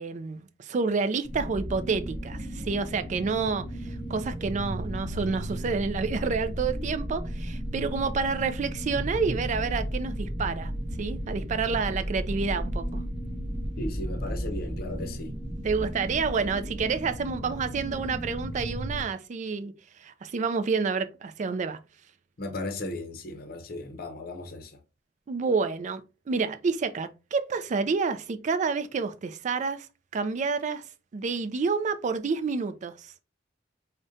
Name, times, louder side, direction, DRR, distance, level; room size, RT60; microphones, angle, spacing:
voice 1, 0.0-10.7 11.0-13.0 15.6-21.8 25.3-29.9 30.1-33.1, right 4 dB, 40° right, 0.3 m, -29 dB
sound 1, 1.2-19.0, equal, 5° right, 0.7 m, -34 dB
voice 2, 13.8-15.3 22.4-24.8, left 1 dB, 55° left, 0.6 m, -36 dB
4.9 x 2.1 x 2.6 m
head